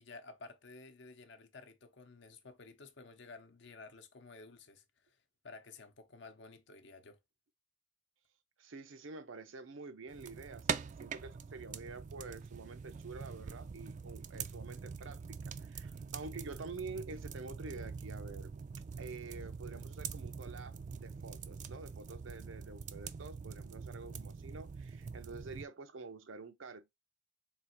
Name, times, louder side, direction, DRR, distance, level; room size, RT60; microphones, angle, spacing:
voice 1, 0.0-5.2 5.4-7.2, left 3 dB, 65° left, 0.8 m, -53 dB
voice 2, 8.6-18.5 19.0-26.9, right 3 dB, 90° right, 0.6 m, -48 dB
sound 1, 10.1-25.7, right 6 dB, 40° right, 0.3 m, -44 dB
3.6 x 2.4 x 4.3 m
head